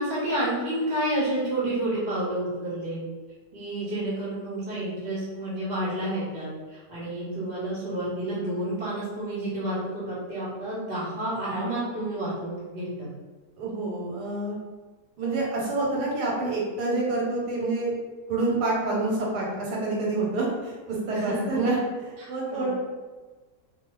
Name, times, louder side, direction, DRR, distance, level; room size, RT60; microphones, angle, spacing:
voice 1, 0.0-3.0 3.5-13.1 21.1-21.6 22.2-22.7, right 1 dB, 40° right, -8 dB, 0.8 m, -30 dB
voice 2, 13.6-14.6 15.2-17.9 18.3-22.7, right 2 dB, 90° right, -3 dB, 1.3 m, -27 dB
2.6 x 2.3 x 3.1 m, 1.3 s
omnidirectional pair, 1.7 m